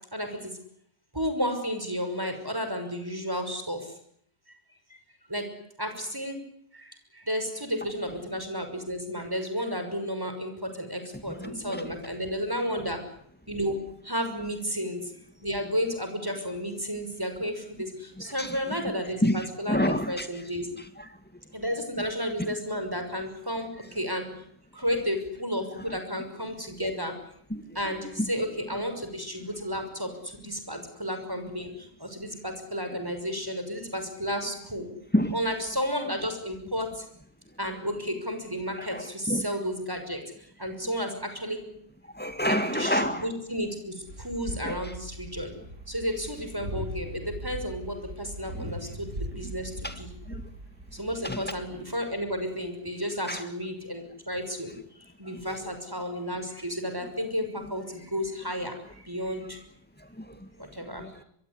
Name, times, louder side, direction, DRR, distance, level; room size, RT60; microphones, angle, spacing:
voice 1, 0.1-0.5 1.1-3.9 4.9-5.0 5.3-5.5 5.8-6.4 6.7-13.0 13.5-15.1 15.4-19.8 20.1-20.7 21.5-24.3 24.7-27.1 27.7-34.9 35.3-37.0 37.6-41.6 42.7-45.5 45.9-50.1 50.9-54.7 55.2-59.6 60.6-61.1, equal, 10° right, 7 dB, 6.0 m, -32 dB
voice 2, 11.3-12.0 18.2-18.8 19.2-20.3 20.8-21.1 22.5-22.6 26.8-26.9 27.5-28.3 30.7-30.8 32.9-33.0 35.1-35.3 38.8-39.4 42.1-43.3 44.6-44.9 48.5-48.7 49.8-50.0 50.3-50.4 51.2-51.5 53.3-53.4 55.2-55.4 60.0-60.5 61.0-61.2, equal, 5° left, 9 dB, 2.0 m, -30 dB
sound 1, 44.1-52.2, right 1 dB, 40° right, 3.2 m, -40 dB
25.0 x 23.0 x 9.9 m, 0.69 s
omnidirectional pair, 1.9 m